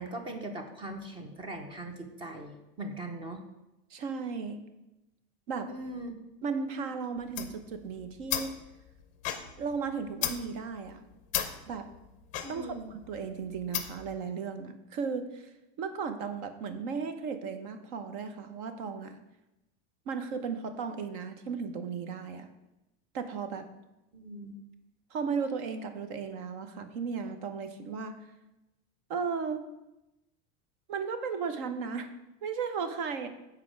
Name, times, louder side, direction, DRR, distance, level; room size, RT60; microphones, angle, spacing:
voice 1, 0.0-3.4 5.7-6.2 12.4-12.9 24.1-24.6, right 1 dB, 15° right, 5 dB, 0.7 m, -40 dB
voice 2, 3.9-4.6 5.5-5.7 6.4-8.5 9.6-11.0 11.7-11.9 12.5-15.5 15.8-19.2 20.1-22.5 23.1-23.7 25.1-28.2 29.1-29.6 30.9-32.1 32.4-33.3, right 5 dB, 55° right, 9 dB, 0.9 m, -35 dB
sound 1, 7.2-14.2, left 10 dB, 25° left, 0.6 m, -37 dB
8.4 x 4.4 x 6.2 m, 0.95 s
supercardioid pair, 180°, 31 cm